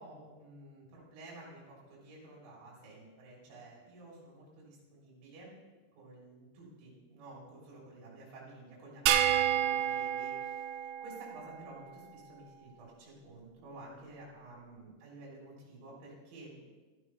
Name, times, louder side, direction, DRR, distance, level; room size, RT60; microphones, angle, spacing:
voice 1, 0.0-5.6 6.0-16.6, right 2 dB, 65° right, -4 dB, 5.2 m, -52 dB
sound 1, 9.1-11.6, right 10 dB, 85° right, 2.6 m, -30 dB
14.0 x 9.6 x 3.1 m, 1.3 s
omnidirectional pair, 5.8 m